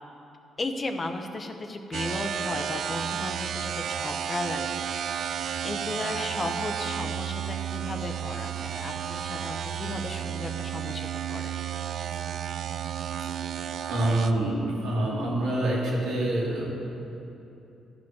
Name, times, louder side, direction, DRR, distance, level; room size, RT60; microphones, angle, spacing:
voice 1, 0.6-11.9, left 2 dB, 30° left, 6 dB, 0.7 m, -35 dB
sound 1, 1.9-14.3, right 9 dB, 65° right, 0.4 m, -32 dB
voice 2, 13.9-16.7, right 1 dB, 85° right, -4 dB, 2.2 m, -26 dB
12.5 x 5.3 x 5.8 m, 2.9 s
cardioid pair, 90°, 0 cm